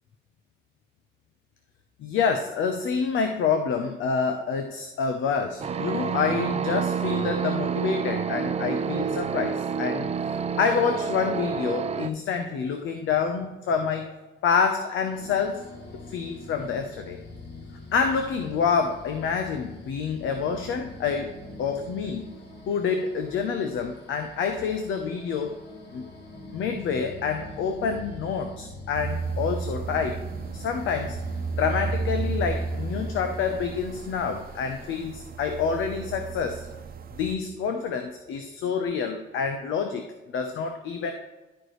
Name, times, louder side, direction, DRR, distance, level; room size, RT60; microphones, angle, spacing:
voice 1, 2.0-10.1 10.6-14.1 14.4-15.6 16.1-17.2 17.9-22.3 22.7-25.5 25.9-26.1 26.5-30.2 30.5-31.2 31.6-36.6 37.1-40.1 40.3-41.1, left 6 dB, 80° left, 5 dB, 0.8 m, -27 dB
sound 1, 5.6-12.1, right 6 dB, 30° right, 0.5 m, -28 dB
sound 2, 15.1-35.0, left 1 dB, 60° left, 2.0 m, -44 dB
sound 3, 28.9-37.3, right 4 dB, 50° right, 0.9 m, -33 dB
13.0 x 4.7 x 3.1 m, 1.1 s
cardioid pair, 90°, 20 cm